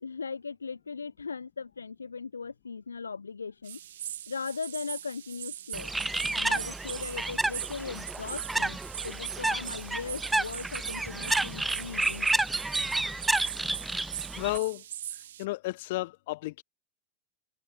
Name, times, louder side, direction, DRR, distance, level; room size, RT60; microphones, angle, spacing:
voice 1, 0.0-3.8 4.3-5.9 6.3-8.8 9.0-12.3, left 5 dB, 75° left, 0.5 m, -38 dB
sound 1, 3.6-15.4, right 11 dB, 60° right, 0.5 m, -41 dB
Bird, 5.7-14.6, right 2 dB, 5° right, 0.7 m, -30 dB
voice 2, 14.4-14.8 15.4-16.6, left 19 dB, 50° left, 1.5 m, -32 dB
figure-of-eight pair, 90°, 0 cm